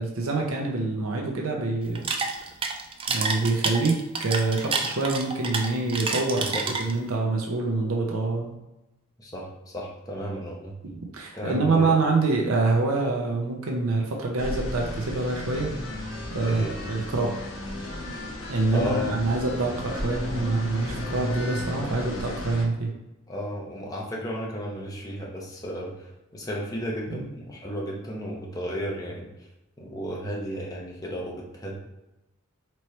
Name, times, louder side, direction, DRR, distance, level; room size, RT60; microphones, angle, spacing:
voice 1, 0.0-2.1 3.1-8.5 10.8-15.7 16.3-17.3 18.5-22.9 27.1-27.2, right 3 dB, 80° right, 0 dB, 0.8 m, -26 dB
sound 1, 1.8-7.2, right 4 dB, 25° right, 0.3 m, -29 dB
voice 2, 6.4-6.7 9.2-10.8 11.3-12.0 16.4-16.8 18.7-19.2 23.3-29.5 29.8-31.8, equal, 15° left, -3 dB, 0.8 m, -33 dB
sound 2, 14.4-22.6, left 1 dB, 65° left, 1.0 m, -34 dB
4.3 x 3.1 x 3.2 m, 0.96 s
head